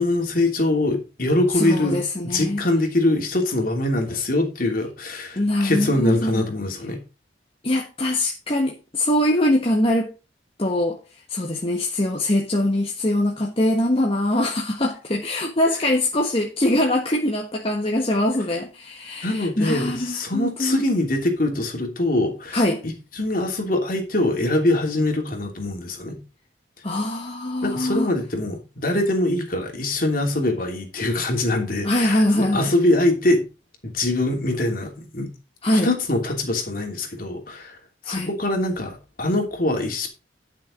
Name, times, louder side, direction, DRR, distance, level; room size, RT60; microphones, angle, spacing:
voice 1, 0.0-7.0 19.2-22.6 23.1-26.2 27.6-33.4 33.8-35.3 35.6-37.8 38.1-40.1, left 1 dB, 45° left, 3.0 m, -23 dB
voice 2, 1.5-2.6 5.3-6.5 7.6-10.1 10.6-11.0 11.3-20.8 22.5-22.8 26.8-28.1 31.8-32.7 35.6-35.9 37.5-37.7 38.0-38.3, left 1 dB, 30° left, 1.4 m, -23 dB
11.5 x 6.5 x 5.2 m
head